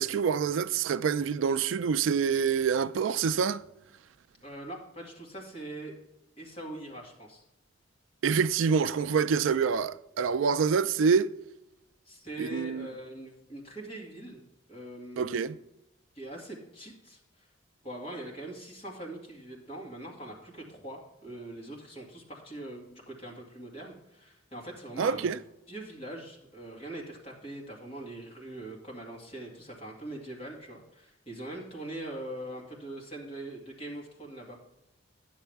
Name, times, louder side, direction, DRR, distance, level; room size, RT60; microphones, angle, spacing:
voice 1, 0.0-3.6 8.2-11.3 12.4-12.9 15.2-15.6 25.0-25.4, right 6 dB, 80° right, 0.4 m, -26 dB
voice 2, 4.4-5.9 6.4-7.4 12.0-14.4 14.7-15.6 16.1-17.5 17.8-25.3 25.7-34.6, right 1 dB, 30° left, 2.2 m, -42 dB
10.0 x 7.3 x 3.5 m
head